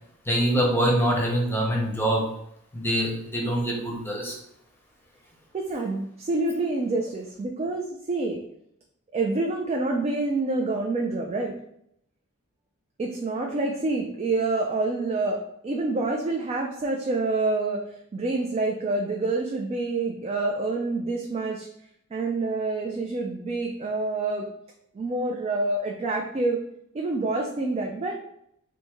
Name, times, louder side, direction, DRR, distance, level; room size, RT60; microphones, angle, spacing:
voice 1, 0.3-2.3 2.7-4.3, right 1 dB, 10° left, -2 dB, 0.8 m, -24 dB
voice 2, 5.5-8.4 9.1-11.5 13.0-17.9 18.1-21.7 22.1-24.5 24.9-26.6 26.9-28.1, right 2 dB, 30° right, 1 dB, 0.3 m, -27 dB
3.4 x 2.6 x 3.0 m, 0.74 s
head